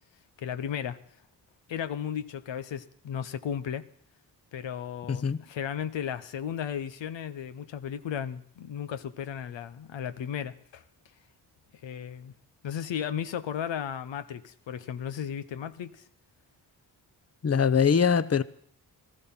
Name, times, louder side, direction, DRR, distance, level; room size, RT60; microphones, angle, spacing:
voice 1, 0.4-1.0 1.7-3.8 4.5-10.8 11.8-12.3 12.6-16.0, left 8 dB, 80° left, 0.8 m, -35 dB
voice 2, 17.4-18.4, left 6 dB, 35° left, 0.8 m, -22 dB
15.5 x 13.5 x 5.8 m
supercardioid pair, 40°, 44 cm